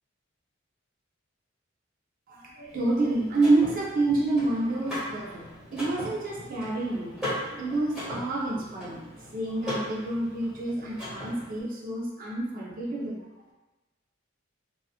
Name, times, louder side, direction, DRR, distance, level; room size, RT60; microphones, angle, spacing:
voice 1, 2.3-7.2 7.5-13.2, right 2 dB, 45° right, -4 dB, 0.4 m, -28 dB
Car / Mechanisms, 2.7-11.6, left 1 dB, 5° right, 1.1 m, -39 dB
2.7 x 2.4 x 2.3 m, 1.1 s
head